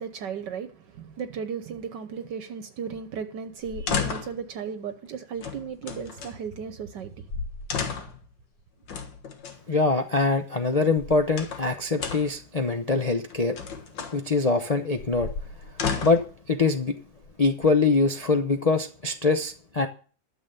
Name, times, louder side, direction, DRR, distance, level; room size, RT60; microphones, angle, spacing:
voice 1, 0.0-7.1, right 6 dB, 70° right, 1.5 m, -35 dB
sound 1, 3.6-4.4 5.4-6.3 7.0-7.1 7.3-8.3 8.9-9.6 10.7-11.7 12.0-12.4 13.3-14.2 15.0-16.3 17.2-17.9, left 6 dB, 75° left, 2.1 m, -33 dB
voice 2, 9.7-13.5 14.1-15.3 16.0-16.2 16.5-17.0 17.4-19.9, left 3 dB, 50° left, 0.4 m, -23 dB
12.0 x 7.1 x 6.7 m
omnidirectional pair, 2.0 m